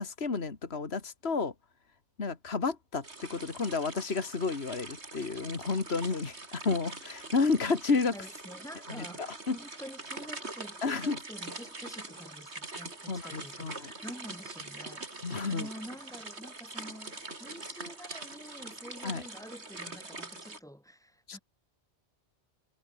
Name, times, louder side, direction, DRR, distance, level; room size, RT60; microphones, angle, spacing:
voice 1, 0.0-1.5 2.2-8.1 9.0-9.6 10.8-11.2 13.1-13.9 15.2-15.7 19.0-19.2 21.3-21.4, left 4 dB, 65° left, 2.4 m, -31 dB
sound 1, 3.0-20.6, right 2 dB, 75° right, 4.1 m, -44 dB
voice 2, 8.1-21.4, equal, 5° left, 7.9 m, -48 dB
omnidirectional pair, 1.2 m